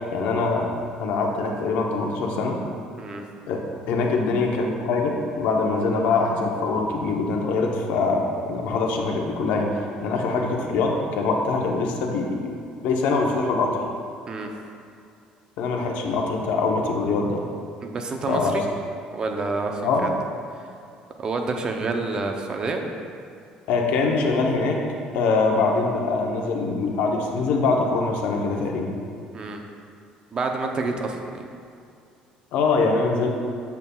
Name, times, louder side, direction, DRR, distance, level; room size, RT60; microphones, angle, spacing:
voice 1, 0.1-0.7 1.0-2.6 3.5-9.7 10.0-12.5 12.8-13.8 15.6-17.4 18.3-18.5 19.8-20.1 23.7-24.8 25.1-28.9 32.5-33.3, left 3 dB, 75° left, 1 dB, 0.9 m, -23 dB
voice 2, 17.8-18.6 19.1-20.1 20.6-20.7 21.2-22.8 29.3-29.6 30.3-31.4, right 3 dB, 30° right, 3 dB, 0.6 m, -28 dB
8.1 x 7.1 x 2.3 m, 2.4 s
cardioid pair, 140°, 3 cm